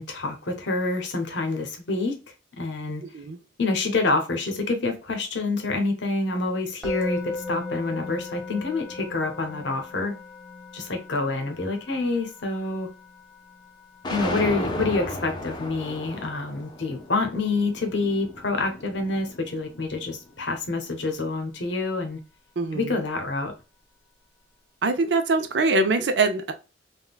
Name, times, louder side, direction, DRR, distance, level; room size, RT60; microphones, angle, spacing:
voice 1, 0.0-2.2 2.6-3.0 3.6-10.1 10.7-12.9 14.1-22.2 22.7-23.5, left 3 dB, 75° left, 0.8 m, -27 dB
Musical instrument, 6.8-17.9, left 2 dB, ahead, 0.8 m, -39 dB
sound 1, 14.0-20.2, left 1 dB, 25° left, 0.5 m, -34 dB
voice 2, 22.6-22.9 24.8-26.5, right 3 dB, 65° right, 0.5 m, -23 dB
3.5 x 2.2 x 2.3 m
head